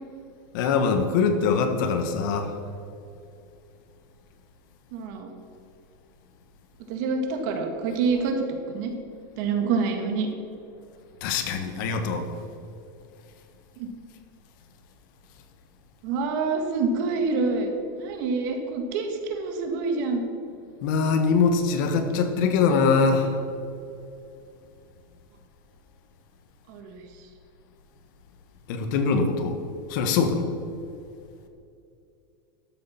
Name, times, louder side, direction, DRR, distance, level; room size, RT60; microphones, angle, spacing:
voice 1, 0.5-2.5 11.2-12.3 20.8-23.3 28.7-29.6 29.9-30.5, left 5 dB, 60° left, 6 dB, 1.4 m, -23 dB
voice 2, 4.9-5.3 6.9-8.9 9.4-10.3 13.8-13.9 16.0-17.7 18.0-20.2 26.7-27.0, right 4 dB, 60° right, 4 dB, 1.8 m, -27 dB
12.5 x 6.7 x 5.8 m, 2.6 s
supercardioid pair, 150°, 12 cm